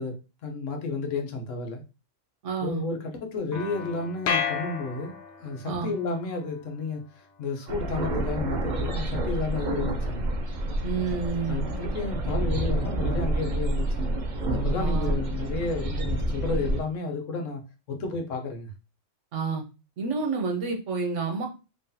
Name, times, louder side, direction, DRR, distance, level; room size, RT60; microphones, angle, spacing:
voice 1, 0.0-1.8 2.6-5.1 5.4-10.3 11.5-14.1 14.5-17.6 17.9-18.7, left 3 dB, 80° left, 1.2 m, -32 dB
voice 2, 2.4-2.8 5.6-5.9 10.8-11.7 14.8-15.2 19.3-19.6 20.0-21.5, right 5 dB, 70° right, 1.2 m, -29 dB
Piano, 3.5-9.9, left 3 dB, 15° left, 0.9 m, -49 dB
sound 1, 4.3-5.6, left 7 dB, 60° left, 0.6 m, -29 dB
sound 2, 7.7-16.8, right 1 dB, 45° right, 0.7 m, -28 dB
3.1 x 2.8 x 3.8 m
omnidirectional pair, 1.3 m